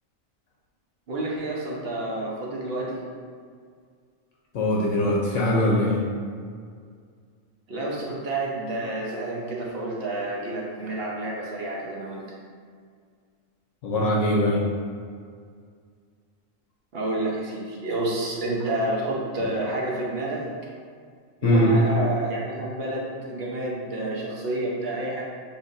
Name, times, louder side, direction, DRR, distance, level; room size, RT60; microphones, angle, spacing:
voice 1, 1.1-3.0 7.7-12.2 16.9-20.4 21.4-25.2, right 1 dB, 50° right, -4 dB, 1.0 m, -29 dB
voice 2, 4.5-6.0 13.8-14.6 21.4-21.7, left 1 dB, 75° left, -3 dB, 1.0 m, -21 dB
6.9 x 2.7 x 2.6 m, 2.1 s
omnidirectional pair, 1.4 m